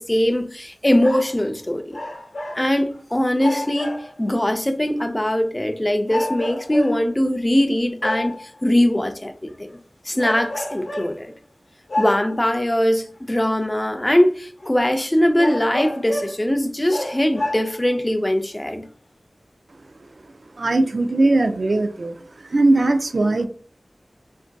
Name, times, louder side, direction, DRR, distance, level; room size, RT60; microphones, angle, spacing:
voice 1, 0.0-2.0 2.6-9.7 10.1-11.3 12.0-18.9, left 1 dB, 20° left, 0.4 m, -21 dB
sound 1, 0.9-1.4 1.9-3.0 3.4-4.2 5.0-5.1 6.1-7.2 8.0-8.5 9.5-9.7 10.2-11.2 11.9-12.5 13.4-13.5 14.1-14.2 14.6-14.7 15.4-16.5 16.9-17.9 18.7-18.8, left 1 dB, 75° left, 0.8 m, -29 dB
voice 2, 20.6-22.2 22.5-23.5, right 2 dB, 65° right, 0.3 m, -19 dB
3.4 x 2.5 x 2.2 m
wide cardioid pair, 75°, 0 cm